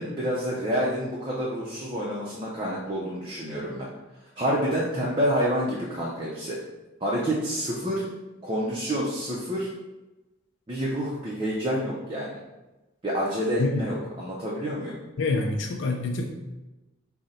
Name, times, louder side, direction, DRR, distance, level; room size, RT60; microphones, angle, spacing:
voice 1, 0.0-3.9 4.4-6.6 7.0-8.0 8.4-9.7 10.7-12.4 13.0-15.0, equal, 25° right, -6 dB, 0.5 m, -28 dB
voice 2, 15.2-16.2, left 3 dB, 65° left, 1 dB, 0.4 m, -26 dB
3.7 x 2.1 x 4.0 m, 1.1 s
head